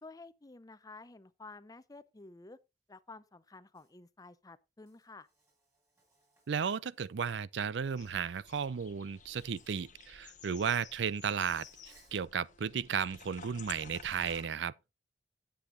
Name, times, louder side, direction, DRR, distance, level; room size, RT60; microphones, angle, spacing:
voice 1, 0.0-2.6 2.9-5.3, left 3 dB, 20° left, 0.6 m, -52 dB
Insect, 3.7-3.9 4.9-7.4 8.6-8.7 9.4-9.9 10.2-10.7 11.4-12.2, right 2 dB, 15° right, 4.6 m, -68 dB
voice 2, 6.5-11.7 12.1-14.7, right 7 dB, 75° right, 0.4 m, -34 dB
sound 1, 8.0-14.5, left 6 dB, 45° left, 1.2 m, -53 dB
10.0 x 7.8 x 3.8 m
head